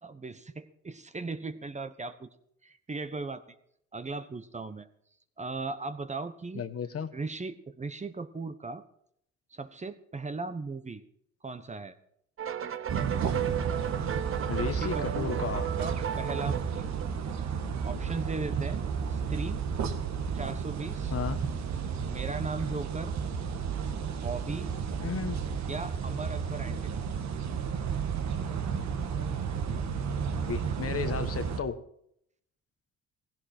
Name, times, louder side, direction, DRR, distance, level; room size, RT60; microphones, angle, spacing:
voice 1, 0.0-2.3 2.6-3.4 3.9-4.9 5.4-8.8 9.5-11.0 11.4-11.9 14.6-15.4 15.8-16.9 17.8-19.6 20.3-21.1 22.1-23.1 24.1-24.7 25.7-26.9, right 3 dB, 25° right, 1.2 m, -38 dB
voice 2, 6.5-7.1 14.5-15.7 21.1-21.4 25.0-25.4 30.5-31.8, left 6 dB, 50° left, 1.4 m, -33 dB
sound 1, 12.4-17.4, right 9 dB, 45° right, 1.0 m, -35 dB
sound 2, 12.9-31.6, right 6 dB, 65° right, 1.7 m, -32 dB
17.5 x 16.5 x 4.5 m
cardioid pair, 90°, 30 cm